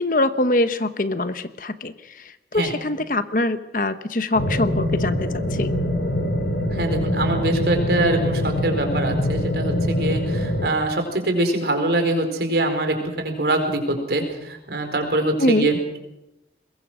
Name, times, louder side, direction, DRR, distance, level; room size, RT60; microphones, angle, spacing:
voice 1, 0.0-5.7 15.4-15.7, left 2 dB, 50° left, 11 dB, 1.1 m, -23 dB
sound 1, 4.3-10.7, left 1 dB, 85° left, 3.1 m, -24 dB
voice 2, 6.7-15.8, right 1 dB, 70° right, 5 dB, 4.7 m, -23 dB
22.0 x 21.5 x 6.2 m, 0.88 s
head